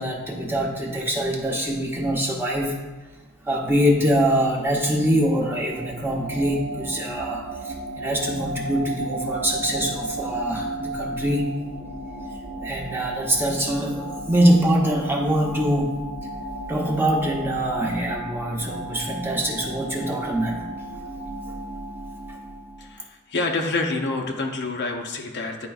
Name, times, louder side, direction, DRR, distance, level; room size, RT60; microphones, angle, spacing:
voice 1, 0.0-2.8 3.4-11.5 12.6-16.0 16.7-20.7, equal, 10° right, -2 dB, 0.8 m, -24 dB
sound 1, 4.1-23.0, right 2 dB, 50° right, 0.8 m, -34 dB
voice 2, 22.8-25.7, left 3 dB, 50° left, 3 dB, 0.6 m, -27 dB
10.0 x 4.4 x 2.3 m, 1.2 s
head